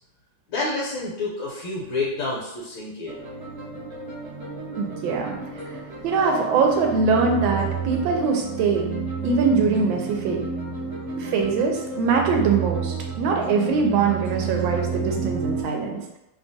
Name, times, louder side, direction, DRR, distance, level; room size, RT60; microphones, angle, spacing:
voice 1, 0.5-3.2, left 2 dB, 80° left, -5 dB, 1.3 m, -28 dB
sound 1, 3.1-15.6, right 4 dB, 60° right, 0.7 m, -31 dB
voice 2, 4.7-5.4 6.0-8.9 9.2-10.4 11.2-16.2, right 5 dB, 85° right, 1 dB, 1.3 m, -22 dB
3.2 x 2.3 x 2.6 m, 0.89 s
omnidirectional pair, 2.1 m